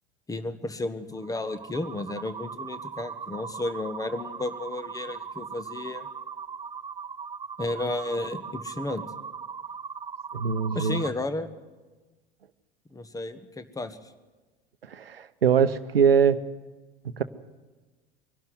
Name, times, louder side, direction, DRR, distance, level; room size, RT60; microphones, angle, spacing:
voice 1, 0.3-6.1 7.6-9.0 10.7-11.5 12.9-14.0, left 2 dB, 10° left, 12 dB, 1.4 m, -33 dB
sound 1, 1.1-11.1, right 6 dB, 15° right, 0.7 m, -39 dB
voice 2, 10.3-11.0 14.8-16.4 17.0-17.2, right 7 dB, 80° right, 14 dB, 0.9 m, -22 dB
23.0 x 12.0 x 9.6 m, 1.3 s
figure-of-eight pair, 75°, 29 cm